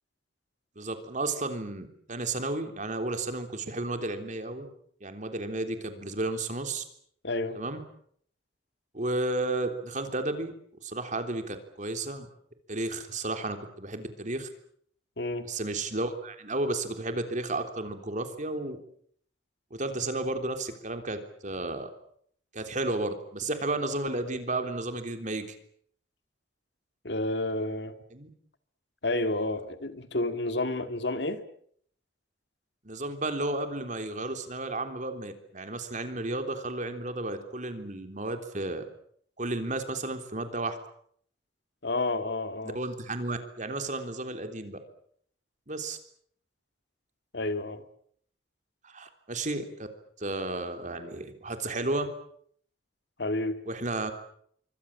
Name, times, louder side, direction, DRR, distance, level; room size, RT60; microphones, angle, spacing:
voice 1, 0.7-4.7 5.0-6.8 7.5-7.8 8.9-10.5 10.8-12.3 12.7-14.5 15.4-18.8 19.7-21.9 22.5-25.5 28.1-28.3 32.8-38.8 39.4-40.8 42.7-44.8 45.7-46.0 48.8-49.9 50.2-52.1 53.7-54.1, right 2 dB, 45° right, 7 dB, 3.5 m, -33 dB
voice 2, 7.2-7.6 15.2-15.5 27.0-27.9 29.0-31.4 41.8-42.8 47.3-47.8 53.2-53.6, left 2 dB, 65° left, 9 dB, 2.1 m, -30 dB
26.5 x 24.5 x 7.4 m, 0.64 s
head